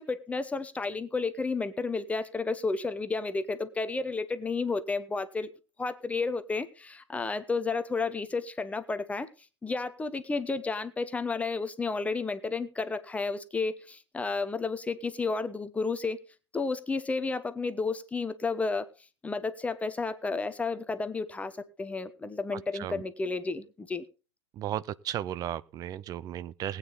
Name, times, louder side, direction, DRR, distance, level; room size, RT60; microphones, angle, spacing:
voice 1, 0.0-5.5 5.8-9.3 9.6-16.2 16.5-18.9 19.2-24.0, left 4 dB, 10° left, 0.9 m, -32 dB
voice 2, 24.6-26.8, right 11 dB, 25° right, 0.6 m, -35 dB
19.0 x 9.1 x 4.0 m
figure-of-eight pair, 100°, 15 cm